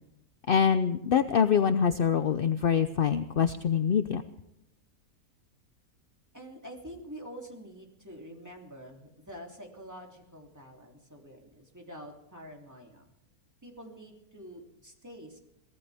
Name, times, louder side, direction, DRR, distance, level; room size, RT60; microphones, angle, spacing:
voice 1, 0.5-4.2, left 7 dB, 55° left, 10 dB, 0.6 m, -25 dB
voice 2, 6.3-13.1 13.6-15.4, equal, 10° right, 0 dB, 2.9 m, -47 dB
23.5 x 17.0 x 3.5 m, 0.85 s
omnidirectional pair, 1.7 m